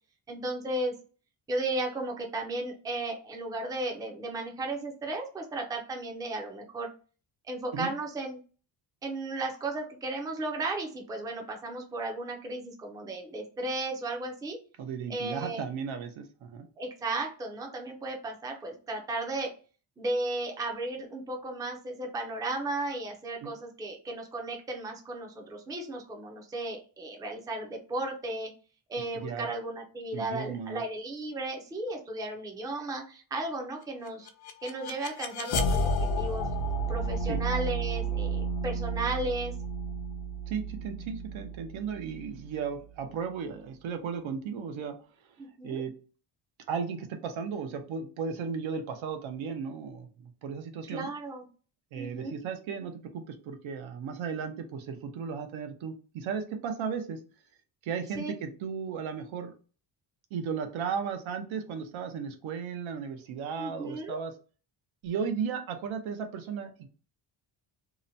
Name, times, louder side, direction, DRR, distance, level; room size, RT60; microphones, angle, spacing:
voice 1, 0.3-0.9 1.5-6.9 7.5-8.4 9.0-14.6 15.1-15.6 16.8-19.5 20.0-28.5 28.9-34.3 34.6-36.5 36.9-39.6 45.4-45.8 50.9-51.4 52.0-52.3 58.2-58.3 63.6-64.2, right 2 dB, 10° right, 2 dB, 0.4 m, -35 dB
voice 2, 14.8-16.7 23.4-23.5 29.0-29.5 30.1-30.8 37.3-37.4 40.5-45.0 45.6-45.9 46.7-51.1 51.9-57.2 57.8-59.5 60.3-64.3 65.0-66.9, right 6 dB, 80° right, 6 dB, 0.7 m, -35 dB
sound 1, 34.1-43.0, right 1 dB, 55° left, 0.5 m, -32 dB
2.8 x 2.1 x 2.6 m, 0.37 s
cardioid pair, 155°, 46 cm